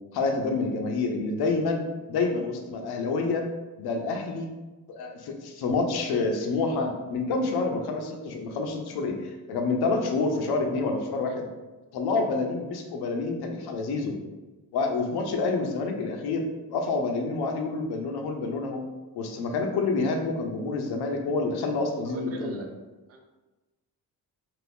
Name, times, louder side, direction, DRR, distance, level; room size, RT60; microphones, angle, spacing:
voice 1, 0.1-3.4 3.8-4.5 4.9-11.5 11.9-14.2 14.7-18.8 19.1-22.6, left 3 dB, 90° left, 3 dB, 0.6 m, -28 dB
voice 2, 22.0-22.7 23.1-23.2, right 3 dB, 40° right, 3 dB, 0.5 m, -38 dB
2.6 x 2.6 x 3.4 m, 1.1 s
cardioid pair, 135°, 37 cm